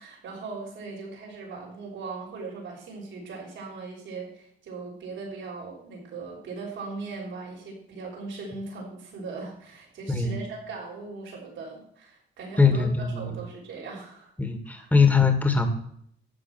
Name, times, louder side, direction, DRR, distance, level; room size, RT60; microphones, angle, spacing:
voice 1, 0.0-14.3 14.7-14.9, right 4 dB, 75° right, -1 dB, 6.0 m, -39 dB
voice 2, 10.1-10.4 12.6-13.3 14.4-15.7, left 5 dB, 10° left, 5 dB, 2.0 m, -21 dB
12.0 x 8.5 x 6.1 m, 0.66 s
cardioid pair, 90°, 20 cm